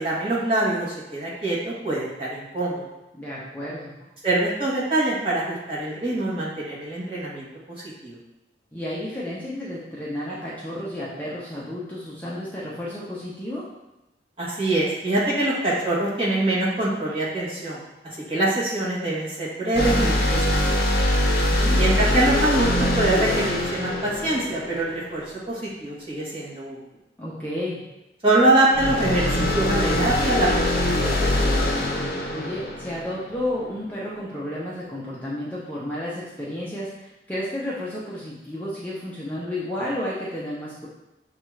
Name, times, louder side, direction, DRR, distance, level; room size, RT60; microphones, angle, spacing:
voice 1, 0.0-2.9 4.2-7.5 8.0-8.2 14.4-17.8 18.3-20.8 21.7-26.8 28.2-31.6, right 2 dB, 30° right, -7 dB, 1.2 m, -24 dB
voice 2, 3.1-3.9 8.7-13.7 21.1-21.8 27.2-27.8 32.3-40.9, left 1 dB, 10° left, -8 dB, 0.6 m, -32 dB
sound 1, 19.7-25.2 28.7-33.5, left 1 dB, 55° left, 0.7 m, -23 dB
6.5 x 2.4 x 3.1 m, 0.95 s
head